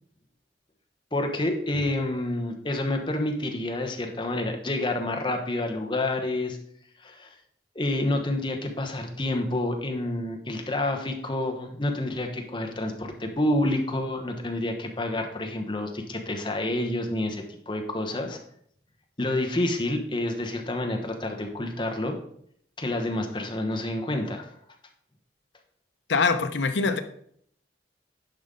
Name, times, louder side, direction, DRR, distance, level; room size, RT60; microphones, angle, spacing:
voice 1, 1.1-6.6 7.0-7.3 7.7-18.4 19.2-22.2 22.8-24.5, left 1 dB, 25° left, 1.1 m, -28 dB
voice 2, 26.1-27.0, left 4 dB, 80° left, 0.8 m, -23 dB
10.5 x 5.3 x 3.8 m
head